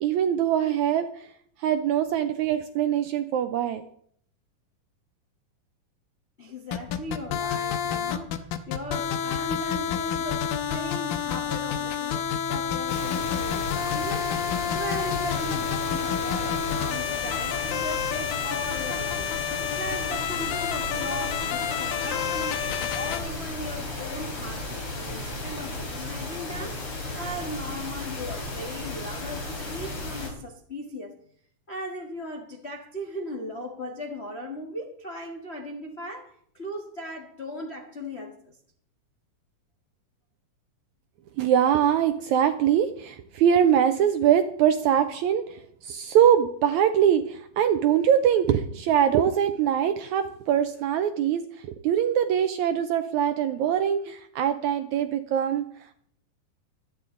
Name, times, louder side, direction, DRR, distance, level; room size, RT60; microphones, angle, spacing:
voice 1, 0.0-1.3 1.6-3.9 41.4-55.6, right 9 dB, 75° right, 1.7 m, -23 dB
voice 2, 6.4-14.3 14.7-22.6 22.9-26.8 27.1-31.1 31.7-38.5, equal, 60° left, 0.6 m, -38 dB
sound 1, 6.7-23.2, left 8 dB, 85° left, 2.7 m, -29 dB
sound 2, 12.9-30.3, left 2 dB, 40° left, 4.0 m, -35 dB
sound 3, 19.8-25.6, right 1 dB, 15° right, 5.8 m, -46 dB
25.0 x 9.9 x 3.8 m
omnidirectional pair, 4.0 m